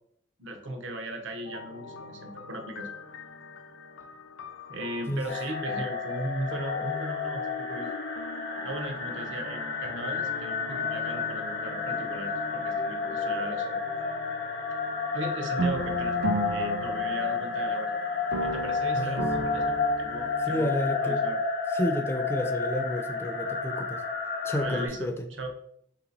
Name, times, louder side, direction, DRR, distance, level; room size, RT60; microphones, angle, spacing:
voice 1, 0.4-2.9 4.7-7.9 8.6-13.8 15.1-16.2 16.5-17.9 18.4-21.4 24.6-25.1 25.4-25.5, right 1 dB, 75° right, 4 dB, 0.7 m, -37 dB
sound 1, 1.5-20.4, left 4 dB, 80° left, 0.4 m, -44 dB
sound 2, 5.3-24.9, left 4 dB, 55° left, 0.7 m, -31 dB
sound 3, 15.6-17.9 18.3-20.6, right 2 dB, 55° right, 0.4 m, -33 dB
voice 2, 18.9-19.5 20.4-21.3 21.7-24.0 24.4-25.3, left 1 dB, 15° left, 6 dB, 0.3 m, -31 dB
3.3 x 2.8 x 3.9 m, 0.68 s
head